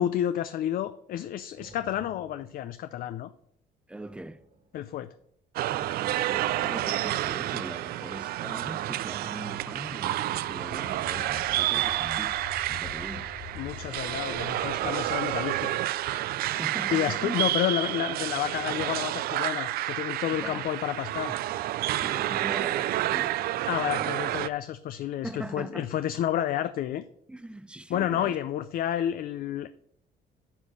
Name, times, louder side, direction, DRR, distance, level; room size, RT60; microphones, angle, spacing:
voice 1, 0.0-3.3 4.7-5.1 13.6-15.8 16.9-21.4 23.7-27.0 27.9-29.7, left 11 dB, 60° left, 0.5 m, -30 dB
sound 1, 1.6-3.5 4.0-5.2 6.3-8.0 9.4-11.8 13.4-15.6 15.9-16.0, right 3 dB, 80° right, 3.7 m, -57 dB
voice 2, 3.9-4.4 5.7-12.4 12.7-13.3 16.3-17.4 20.4-20.7 22.0-23.4 23.7-24.1 25.2-26.0 27.3-28.4, right 1 dB, 5° right, 0.5 m, -41 dB
sound 2, 5.6-24.5, right 14 dB, 65° right, 0.4 m, -30 dB
sound 3, 9.6-16.4, left 7 dB, 40° left, 0.9 m, -46 dB
10.0 x 4.2 x 6.2 m
cardioid pair, 110°, 17 cm